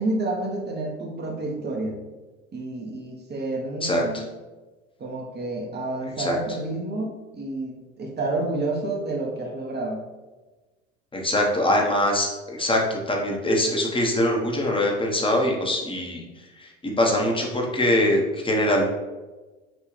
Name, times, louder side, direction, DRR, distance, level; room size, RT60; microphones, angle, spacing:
voice 1, 0.0-2.0 2.5-4.2 5.0-10.0, right 2 dB, 30° right, 0 dB, 1.0 m, -29 dB
voice 2, 3.8-4.2 6.2-6.4 11.1-18.9, left 1 dB, 15° left, 0 dB, 1.1 m, -23 dB
6.1 x 2.7 x 3.2 m, 1.2 s
hypercardioid pair, 70°, 36 cm